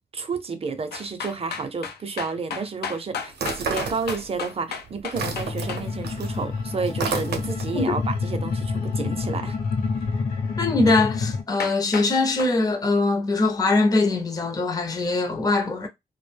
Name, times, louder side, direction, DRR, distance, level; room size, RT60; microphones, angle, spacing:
voice 1, 0.1-9.6, right 4 dB, 35° right, 0.5 m, -31 dB
sound 1, 0.9-5.8 11.2-11.3 11.6-12.1 12.4-12.5, left 6 dB, 85° left, 0.4 m, -33 dB
sound 2, 3.3-4.6 4.9-7.8, right 5 dB, 90° right, 0.6 m, -31 dB
sound 3, 5.2-11.4, left 4 dB, 60° left, 0.9 m, -28 dB
voice 2, 10.6-15.9, left 3 dB, 25° left, 0.5 m, -22 dB
2.4 x 2.1 x 3.3 m
wide cardioid pair, 120°, 16 cm